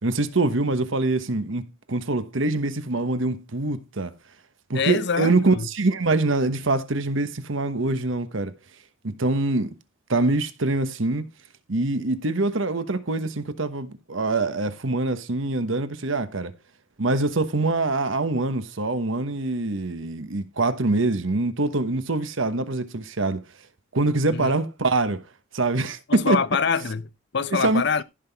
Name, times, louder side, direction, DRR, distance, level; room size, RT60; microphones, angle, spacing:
voice 1, 0.0-4.1 4.7-8.5 9.0-9.7 10.1-11.3 11.7-16.5 17.0-23.4 23.9-25.2 25.5-26.4 27.5-28.0, right 2 dB, 70° right, 1.1 m, -24 dB
voice 2, 4.7-5.7 24.3-24.5 26.1-28.0, left 5 dB, 55° left, 0.6 m, -25 dB
15.0 x 5.8 x 3.5 m
head